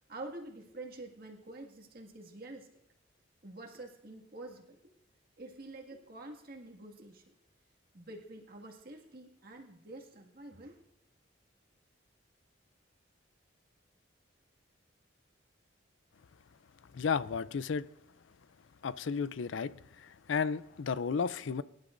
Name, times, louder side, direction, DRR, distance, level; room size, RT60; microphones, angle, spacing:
voice 1, 0.1-2.8 3.4-4.8 5.4-7.3 7.9-10.8, right 2 dB, 50° right, 1 dB, 2.0 m, -47 dB
voice 2, 16.9-17.9 18.8-21.6, left 5 dB, 75° left, 16 dB, 0.4 m, -33 dB
22.5 x 11.5 x 2.6 m, 0.83 s
head